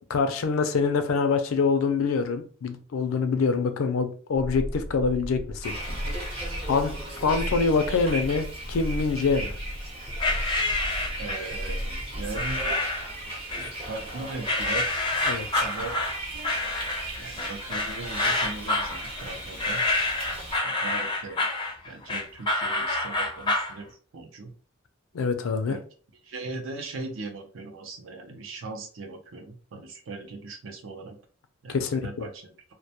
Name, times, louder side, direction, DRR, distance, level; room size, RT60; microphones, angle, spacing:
voice 1, 0.1-5.7 6.7-6.9 7.2-9.5 15.3-15.6 25.1-25.8 31.7-32.3, left 4 dB, 85° left, 8 dB, 0.4 m, -25 dB
sound 1, 4.3-12.8, equal, 90° right, 1.0 m, -35 dB
Bus, 5.6-20.6, right 1 dB, 30° right, 0.7 m, -37 dB
sound 2, 10.2-11.5 12.3-13.1 13.5-14.1 14.5-23.7, left 2 dB, 25° left, 0.4 m, -28 dB
voice 2, 11.2-12.8 13.9-15.0 15.6-16.1 17.2-19.8 20.6-21.5 21.8-24.5 25.7-25.8 26.2-31.2 31.6-32.5, right 3 dB, 70° right, 4 dB, 0.5 m, -39 dB
2.2 x 2.1 x 2.7 m, 0.42 s
head